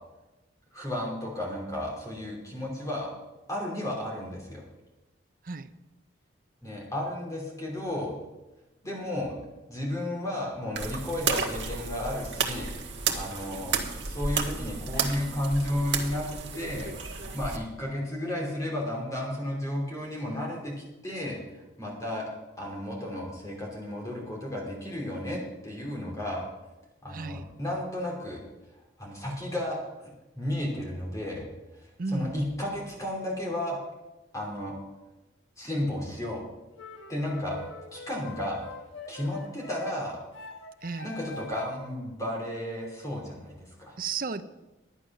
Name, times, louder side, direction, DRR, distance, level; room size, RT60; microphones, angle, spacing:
voice 1, 0.7-3.1 3.5-4.6 6.6-8.1 8.8-9.3 9.7-13.8 14.0-16.3 16.5-16.9 17.3-20.7 21.0-21.4 21.8-22.2 22.6-26.5 27.0-28.4 29.0-29.8 30.4-31.4 32.1-33.8 34.3-34.7 35.6-36.4 37.1-37.6 37.9-38.6 39.1-40.2 41.0-43.9, left 1 dB, 15° left, -2 dB, 3.1 m, -33 dB
sound 1, 10.8-17.6, right 5 dB, 70° right, 1.4 m, -32 dB
voice 2, 27.1-27.5 32.0-32.4 40.8-41.1 44.0-44.4, right 4 dB, 45° right, 12 dB, 0.6 m, -34 dB
sound 2, 36.8-41.9, left 2 dB, 85° left, 1.1 m, -44 dB
11.0 x 9.2 x 6.1 m, 1.0 s
head